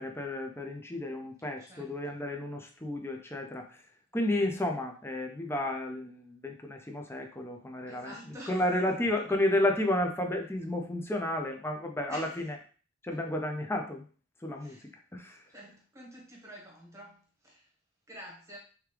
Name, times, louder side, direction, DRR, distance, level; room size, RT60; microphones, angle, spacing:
voice 1, 0.0-3.6 4.1-8.1 8.5-12.6 13.0-14.0 14.4-14.8 15.1-15.4, left 1 dB, 15° left, 0.5 m, -32 dB
voice 2, 1.6-2.1 7.9-9.4 12.1-12.5 13.1-13.2 14.6-14.9 15.5-17.7 18.1-18.6, equal, 15° right, 1.0 m, -49 dB
3.4 x 3.1 x 3.3 m
head